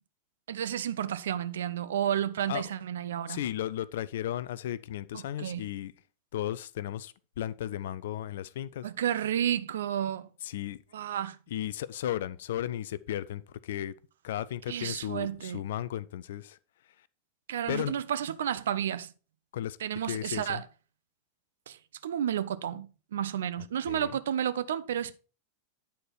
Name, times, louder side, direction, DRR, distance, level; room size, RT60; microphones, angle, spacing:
voice 1, 0.5-3.4 5.1-5.6 8.8-10.3 10.9-11.4 14.7-15.6 17.5-19.1 19.8-20.6 21.7-25.2, right 10 dB, 60° right, 0.5 m, -31 dB
voice 2, 3.3-5.9 6.3-8.9 10.4-10.8 11.5-13.9 14.2-16.6 17.7-17.9 19.5-19.8 20.1-20.6 23.9-24.1, left 12 dB, 55° left, 0.4 m, -35 dB
9.2 x 4.2 x 4.6 m
figure-of-eight pair, 90°, 0 cm